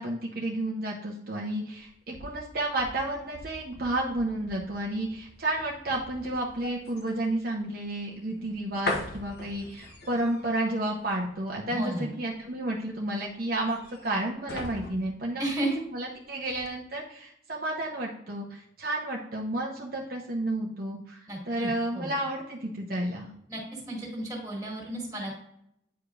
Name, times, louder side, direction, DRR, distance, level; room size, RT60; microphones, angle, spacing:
voice 1, 0.0-15.4 15.9-23.3, right 1 dB, 50° right, -1 dB, 0.8 m, -31 dB
sound 1, 1.7-16.1 16.5-16.7, left 2 dB, 55° left, 1.1 m, -41 dB
voice 2, 11.7-12.1 15.4-15.8 21.3-22.1 23.5-25.3, right 1 dB, 20° right, -1 dB, 2.0 m, -33 dB
9.2 x 4.9 x 2.5 m, 0.78 s
head